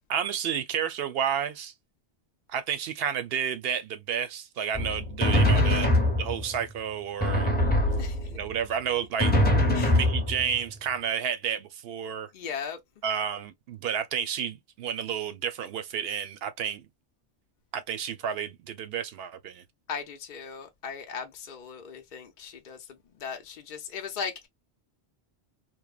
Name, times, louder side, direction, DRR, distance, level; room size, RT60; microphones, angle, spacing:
voice 1, 0.1-1.7 2.5-5.9 6.2-7.5 8.3-9.5 9.9-12.3 13.0-16.8 17.7-19.6, right 8 dB, 70° right, 0.8 m, -31 dB
Drum, 4.7-6.6 7.2-8.5 9.2-10.7, left 1 dB, 10° left, 0.7 m, -23 dB
voice 2, 5.5-5.9 8.0-8.3 9.7-9.9 12.3-12.8 19.9-22.8 23.2-24.5, left 6 dB, 55° left, 0.7 m, -37 dB
3.0 x 2.1 x 2.3 m
omnidirectional pair, 1.1 m